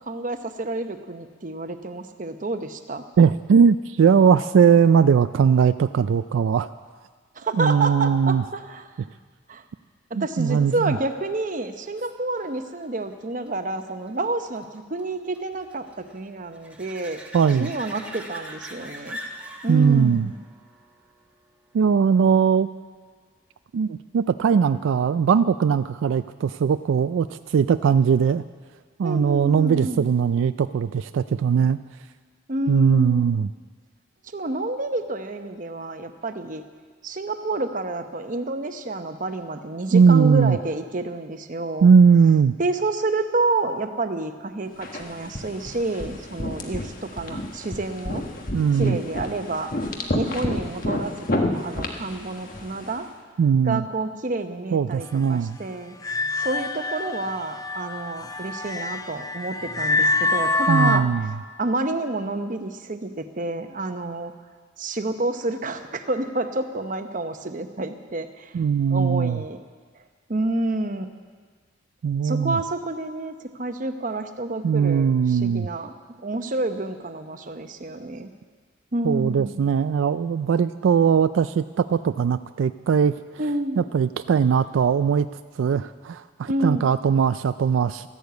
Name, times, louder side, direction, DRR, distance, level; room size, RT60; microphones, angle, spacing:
voice 1, 0.1-3.0 7.3-8.9 9.5-9.6 10.1-17.2 17.6-19.2 19.6-20.4 29.0-30.0 32.5-33.2 34.3-36.6 37.0-41.9 42.6-48.2 48.8-49.7 50.1-53.1 53.6-56.0 56.4-61.1 61.6-64.3 64.8-68.5 68.9-69.6 70.3-71.1 72.2-75.9 76.2-78.3 78.9-79.6 83.4-83.8 86.5-86.8, right 2 dB, 40° right, 8 dB, 0.9 m, -29 dB
voice 2, 3.2-6.7 7.6-8.4 10.2-11.0 17.3-17.7 19.7-20.3 21.7-22.7 23.7-28.4 29.0-31.8 32.7-33.5 39.9-40.6 41.8-42.5 48.5-49.0 53.4-53.8 54.7-55.6 60.7-61.3 68.5-69.4 72.0-72.6 74.6-75.7 79.0-83.1 83.8-85.3 85.6-88.1, right 6 dB, 80° right, 12 dB, 0.3 m, -19 dB
sound 1, 11.2-22.3 27.9-28.0, equal, 5° right, 1.2 m, -44 dB
sound 2, 44.8-53.0, left 1 dB, 45° left, 1.3 m, -30 dB
sound 3, 56.0-61.0, left 2 dB, 20° left, 0.5 m, -26 dB
13.5 x 11.5 x 8.1 m, 1.5 s
head